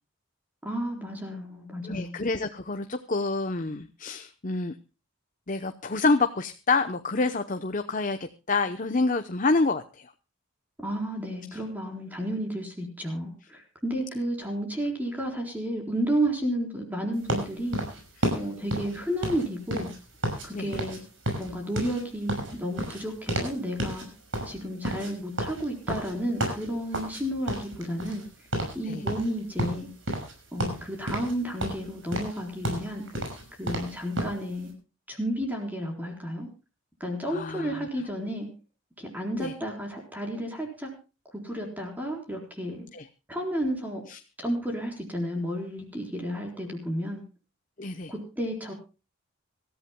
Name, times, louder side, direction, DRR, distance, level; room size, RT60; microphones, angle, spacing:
voice 1, 0.6-2.1 10.8-17.8 18.3-19.9 20.4-21.0 21.4-24.1 24.5-28.3 28.7-29.9 30.5-33.1 33.6-34.7 35.1-36.5 37.0-38.5 39.0-40.9 41.3-42.8 43.3-44.0 44.4-47.2 48.1-48.7, equal, 10° right, 2 dB, 4.2 m, -32 dB
voice 2, 1.8-4.7 5.5-10.1 18.2-18.3 20.5-20.7 28.9-29.0 37.3-37.9 39.4-39.5 42.9-43.0 44.1-44.2 47.8-48.1, left 3 dB, 40° left, 8 dB, 0.8 m, -28 dB
sound 1, 17.3-20.5 20.7-21.0 21.2-23.5 23.8-24.0 24.3-27.2 27.5-28.3 28.5-28.8 29.1-30.3 30.6-31.3 31.6-34.4, right 1 dB, 65° right, 6.0 m, -31 dB
25.5 x 14.0 x 2.2 m, 0.32 s
head